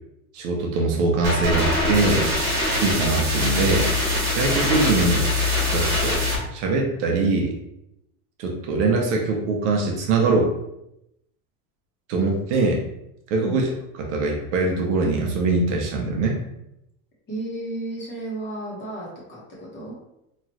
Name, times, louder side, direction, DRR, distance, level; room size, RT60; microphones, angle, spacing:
voice 1, 0.3-2.3 2.8-3.9 4.3-6.2 6.5-7.5 8.4-10.5 12.1-12.8 13.3-13.7 14.0-16.4, right 3 dB, 50° right, 1 dB, 0.6 m, -22 dB
sound 1, 1.2-6.4, left 2 dB, 35° right, 1.1 m, -23 dB
voice 2, 17.3-20.0, right 2 dB, 25° left, -5 dB, 0.9 m, -33 dB
3.0 x 2.3 x 2.9 m, 0.83 s
supercardioid pair, 160°, 45 cm